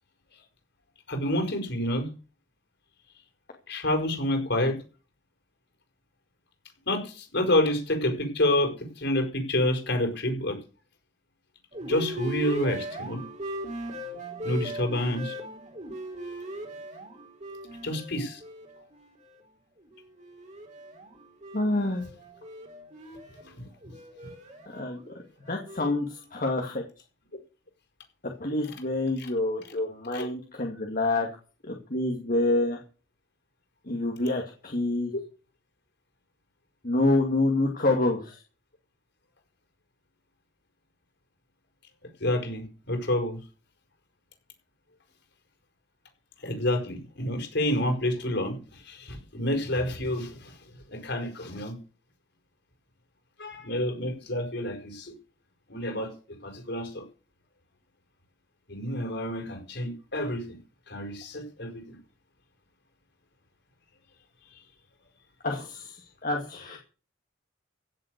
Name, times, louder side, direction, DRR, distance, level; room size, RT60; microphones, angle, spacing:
voice 1, 1.1-2.1 3.7-4.8 6.9-10.6 11.9-13.2 14.4-15.3 17.8-18.4 23.6-23.9 29.2-29.3 30.1-30.3 42.2-43.4 46.4-50.6 50.9-51.8 53.4-55.1 55.7-57.0 58.7-60.6 60.9-62.0, left 1 dB, 65° left, 4 dB, 5.7 m, -28 dB
sound 1, 11.7-19.4 19.8-26.5, right 1 dB, 40° right, 4.1 m, -39 dB
voice 2, 21.5-22.0 24.7-25.0 25.4-26.8 28.2-31.3 31.6-32.8 33.9-35.1 36.8-38.4 65.4-66.8, left 2 dB, 45° left, 1 dB, 2.4 m, -27 dB
16.5 x 7.7 x 6.7 m, 0.36 s
head